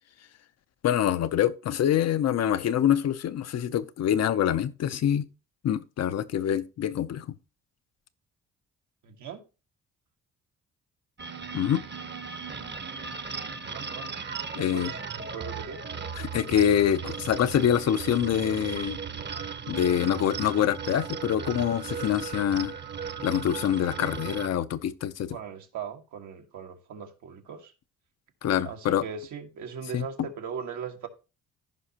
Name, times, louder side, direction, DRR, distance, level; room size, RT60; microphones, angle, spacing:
voice 1, 0.8-5.2 5.6-7.3 11.5-11.8 14.6-14.9 16.2-19.0 19.7-22.7 23.2-25.4 28.4-29.0 29.9-30.3, left 10 dB, 60° left, 0.7 m, -25 dB
voice 2, 9.0-9.4 13.6-14.2 14.5-15.8 25.3-27.7 28.6-31.1, right 7 dB, 75° right, 1.5 m, -39 dB
sound 1, 11.2-24.5, right 6 dB, 35° right, 1.0 m, -37 dB
14.5 x 5.2 x 2.9 m
cardioid pair, 90°, 30 cm